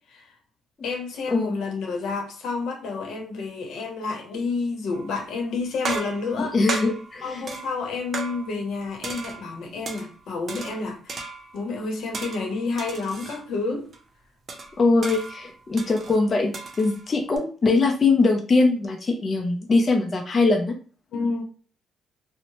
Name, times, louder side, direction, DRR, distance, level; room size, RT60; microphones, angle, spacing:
voice 1, 0.8-6.6 7.2-11.2 11.5-13.9 21.1-21.4, left 4 dB, 75° left, 0.8 m, -29 dB
sound 1, 4.9-5.3 5.8-8.7 9.0-10.1 10.5-11.7 12.1-13.4 13.9-14.0 14.5-17.4, right 3 dB, 45° right, 0.6 m, -36 dB
voice 2, 6.4-7.4 14.8-20.7, left 3 dB, 35° left, 0.4 m, -22 dB
2.7 x 2.0 x 2.9 m
cardioid pair, 90°, 0 cm